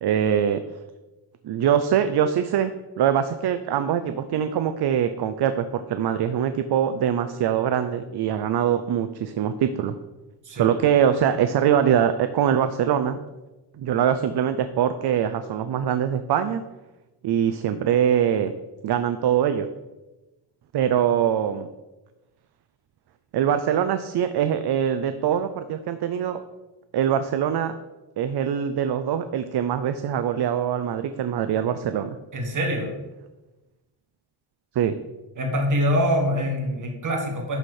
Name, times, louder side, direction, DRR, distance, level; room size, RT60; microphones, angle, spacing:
voice 1, 0.0-0.6 1.4-2.7 3.0-10.0 10.5-13.2 13.8-16.6 17.2-18.5 18.8-19.7 20.7-21.7 23.3-26.4 26.9-27.8 28.2-32.2 34.7-35.0, right 9 dB, 55° right, 10 dB, 0.5 m, -23 dB
voice 2, 32.3-32.9 35.4-37.6, equal, 40° right, 1 dB, 1.6 m, -24 dB
11.5 x 4.3 x 4.8 m, 1.1 s
wide cardioid pair, 175°, 48 cm